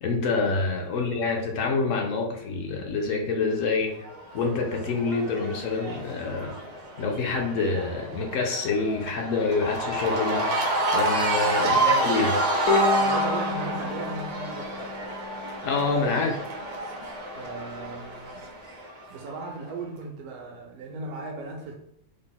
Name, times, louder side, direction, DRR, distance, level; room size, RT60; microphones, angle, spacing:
voice 1, 0.0-3.9 4.3-6.6 7.0-10.5 10.9-12.3 15.6-16.4, left 4 dB, 70° left, 1 dB, 0.8 m, -26 dB
Cheering / Crowd, 4.0-19.3, right 2 dB, 60° right, 0.4 m, -29 dB
voice 2, 11.6-12.1 12.9-15.0 17.4-18.5 19.1-21.8, right 3 dB, 75° right, 0 dB, 1.0 m, -37 dB
Bowed string instrument, 12.7-16.0, left 2 dB, 85° left, 1.2 m, -29 dB
3.5 x 2.0 x 3.8 m, 0.72 s
omnidirectional pair, 1.6 m